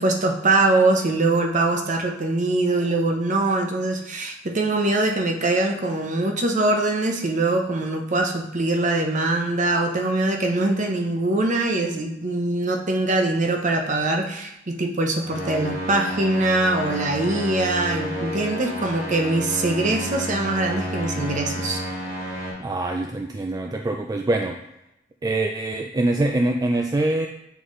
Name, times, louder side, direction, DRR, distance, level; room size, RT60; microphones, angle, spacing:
voice 1, 0.0-21.8, right 2 dB, 40° right, 3 dB, 0.8 m, -22 dB
sound 1, 15.2-22.5, equal, 80° right, 2.2 m, -31 dB
voice 2, 22.6-24.6 25.2-27.3, right 2 dB, 20° right, 3 dB, 0.3 m, -24 dB
7.9 x 3.9 x 3.1 m, 0.84 s
head